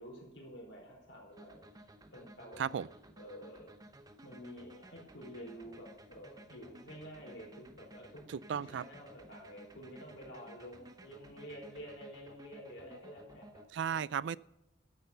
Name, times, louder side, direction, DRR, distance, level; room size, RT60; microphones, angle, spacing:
voice 1, 0.0-1.8 2.1-2.7 3.2-3.7 4.2-8.2 8.5-13.6 13.9-14.0, equal, 85° left, 0 dB, 4.4 m, -49 dB
sound 1, 1.3-13.7, right 1 dB, 20° right, 0.8 m, -56 dB
voice 2, 2.6-2.9 8.3-8.8 13.7-14.4, right 8 dB, 70° right, 20 dB, 0.3 m, -35 dB
12.0 x 8.1 x 6.7 m, 0.86 s
head